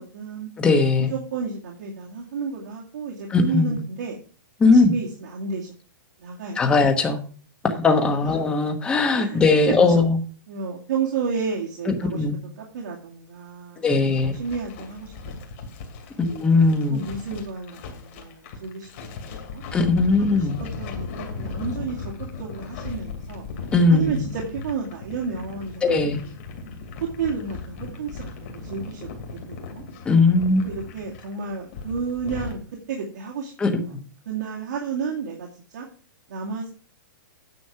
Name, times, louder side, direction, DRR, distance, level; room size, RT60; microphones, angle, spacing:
voice 1, 0.0-0.5 1.0-4.2 4.7-5.7 6.2-6.6 8.2-8.4 9.1-9.4 9.9-10.1 10.5-14.1 14.4-15.1 15.4-15.5 16.9-19.6 20.2-20.5 20.8-23.5 23.9-26.4 27.0-29.8 30.6-32.6 32.9-33.8 34.3-35.9 36.3-36.7, right 5 dB, 60° right, -2 dB, 2.2 m, -32 dB
voice 2, 0.6-1.1 3.3-3.8 4.6-5.0 6.5-7.2 7.6-10.2 11.9-12.3 13.8-14.4 16.2-17.0 19.7-20.6 23.7-24.2 25.8-26.2 30.0-30.6 33.6-33.7, left 3 dB, 10° left, 5 dB, 1.1 m, -19 dB
sound 1, 14.1-32.6, left 4 dB, 40° left, 2.5 m, -37 dB
9.7 x 6.2 x 5.8 m, 0.42 s
hypercardioid pair, 170°, 11 cm